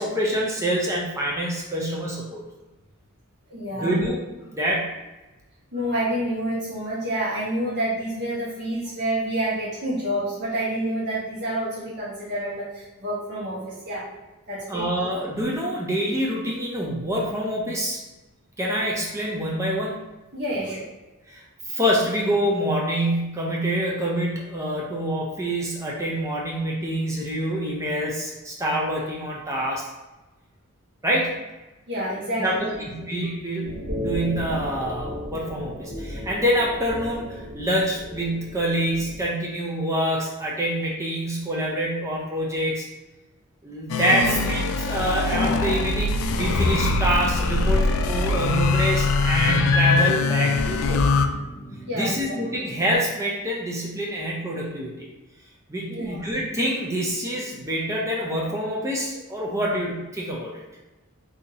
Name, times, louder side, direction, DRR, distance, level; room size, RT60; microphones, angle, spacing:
voice 1, 0.0-2.4 3.8-4.2 4.5-4.9 14.7-18.0 18.6-20.0 21.3-29.9 31.0-31.4 32.4-32.6 32.9-42.9 43.6-51.1 51.9-55.1 55.7-60.6, equal, 15° right, -3 dB, 0.4 m, -26 dB
voice 2, 3.5-3.9 5.7-14.1 14.5-14.9 20.3-20.8 31.9-33.1 44.1-44.5 51.9-52.4 55.9-56.2, right 1 dB, 55° right, -10 dB, 1.2 m, -28 dB
sound 1, 33.6-39.3, equal, 80° right, 1.2 m, -34 dB
sound 2, 43.9-51.3, left 3 dB, 70° left, 0.3 m, -22 dB
sound 3, 46.7-53.0, right 1 dB, 35° left, 0.7 m, -41 dB
3.9 x 2.7 x 2.7 m, 1.1 s
head